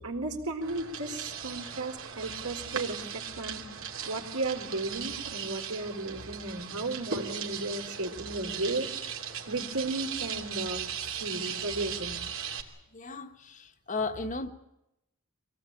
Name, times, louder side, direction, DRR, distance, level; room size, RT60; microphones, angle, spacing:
voice 1, 0.0-3.6 4.0-8.9 9.5-10.8 11.1-12.2, right 2 dB, 90° right, 4.3 m, -34 dB
sound 1, 0.6-12.6, right 7 dB, 65° right, 2.9 m, -38 dB
voice 2, 12.9-14.5, left 3 dB, 35° left, 1.3 m, -35 dB
25.5 x 18.0 x 8.9 m
head